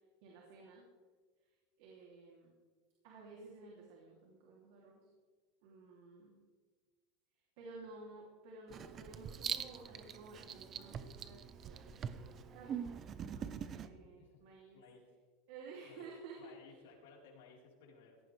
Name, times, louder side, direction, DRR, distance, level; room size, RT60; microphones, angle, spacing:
voice 1, 0.2-0.8 1.8-2.5 3.0-5.1 5.6-6.3 7.6-14.8 15.5-16.4, right 3 dB, 65° right, -2 dB, 3.1 m, -54 dB
Writing, 8.7-13.9, right 8 dB, 30° right, 0.8 m, -43 dB
voice 2, 14.7-15.1 15.8-16.1 16.4-18.2, left 5 dB, 90° left, -2 dB, 4.4 m, -59 dB
17.0 x 14.0 x 3.5 m, 1.4 s
supercardioid pair, 150°, 0 cm